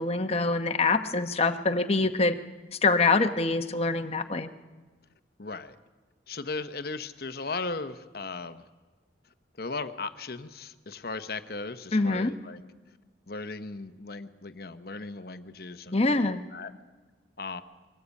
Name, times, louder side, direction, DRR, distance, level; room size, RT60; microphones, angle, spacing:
voice 1, 0.0-2.3 2.8-4.5 11.9-12.3 15.9-16.4, left 3 dB, 35° left, 7 dB, 1.2 m, -25 dB
voice 2, 5.4-5.8 6.3-8.6 9.6-12.6 13.3-16.7 17.4-17.6, left 3 dB, 60° left, 10 dB, 1.0 m, -37 dB
23.0 x 18.0 x 8.4 m, 1.3 s
head